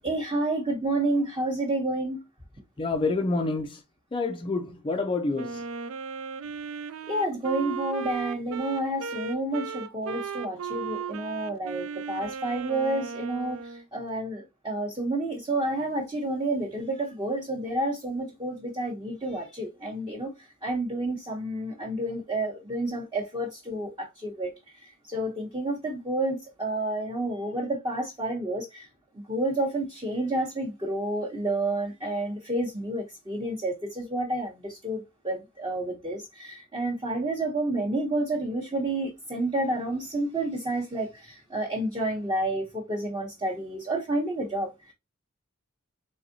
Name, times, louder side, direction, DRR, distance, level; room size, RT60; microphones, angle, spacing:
voice 1, 0.0-2.2 7.1-20.3 20.6-24.5 24.8-28.9 29.1-44.9, right 1 dB, 20° right, 0.9 m, -30 dB
voice 2, 2.8-3.8 4.1-5.6, left 3 dB, 25° left, 0.4 m, -28 dB
Wind instrument woodwind instrument, 5.4-13.8, right 6 dB, 75° right, 0.4 m, -36 dB
4.0 x 3.4 x 2.7 m
head